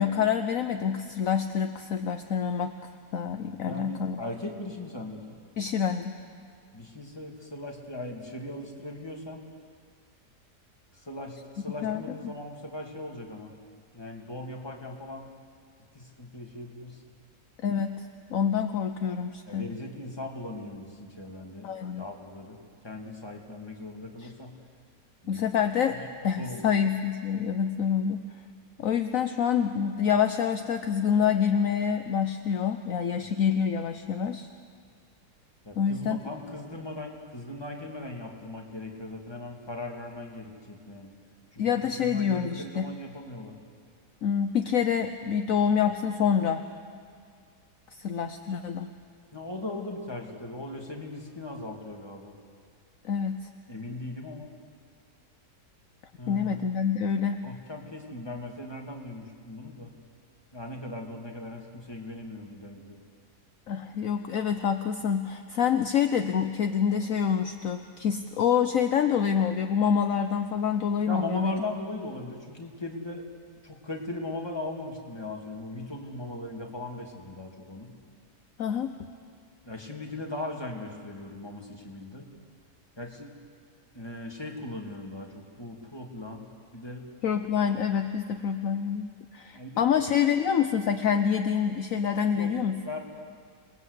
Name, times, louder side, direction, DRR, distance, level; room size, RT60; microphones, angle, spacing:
voice 1, 0.0-2.7 3.1-4.2 5.6-6.2 11.8-12.3 17.6-19.7 21.6-22.0 24.2-24.3 25.3-26.0 26.2-28.2 28.8-34.5 35.8-36.2 41.6-42.9 44.2-46.6 47.9-48.9 53.0-53.5 56.3-57.5 63.7-71.6 78.6-78.9 87.2-92.8, left 7 dB, 60° left, 7 dB, 1.2 m, -27 dB
voice 2, 3.5-5.2 6.7-9.4 10.9-13.5 13.9-15.3 15.9-17.0 19.5-22.6 22.8-24.5 25.2-25.5 25.9-26.1 26.4-26.7 33.1-33.3 35.6-41.1 41.5-43.5 49.3-52.3 53.7-54.5 56.2-56.6 57.4-59.9 60.5-63.0 71.1-73.3 73.6-77.9 79.6-82.3 83.0-83.4 83.9-86.5 86.7-87.1 89.5-89.9 92.3-92.5 92.8-93.0, left 2 dB, 15° left, 0 dB, 2.6 m, -39 dB
28.5 x 20.0 x 8.2 m, 2.1 s
omnidirectional pair, 1.8 m